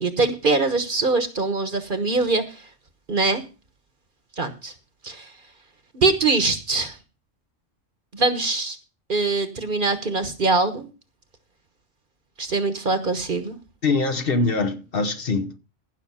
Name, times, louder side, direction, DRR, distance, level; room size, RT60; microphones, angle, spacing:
voice 1, 0.0-2.6 3.1-3.4 4.4-4.7 5.0-5.3 5.9-7.0 8.1-8.8 9.1-10.9 12.4-13.6, right 3 dB, 45° right, 1.3 m, -23 dB
voice 2, 13.8-15.6, left 3 dB, 50° left, 1.1 m, -23 dB
15.5 x 5.9 x 5.6 m
omnidirectional pair, 1.3 m